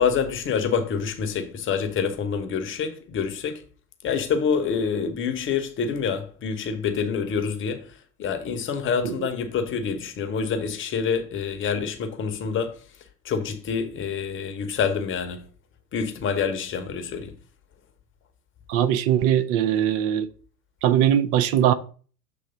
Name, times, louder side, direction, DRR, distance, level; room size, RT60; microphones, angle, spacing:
voice 1, 0.0-3.6 4.0-12.8 13.2-15.4 15.9-17.3, left 6 dB, 25° left, 0.9 m, -27 dB
voice 2, 18.7-20.3 20.8-21.7, right 10 dB, 35° right, 0.5 m, -21 dB
6.9 x 3.2 x 5.3 m
figure-of-eight pair, 85°, 48 cm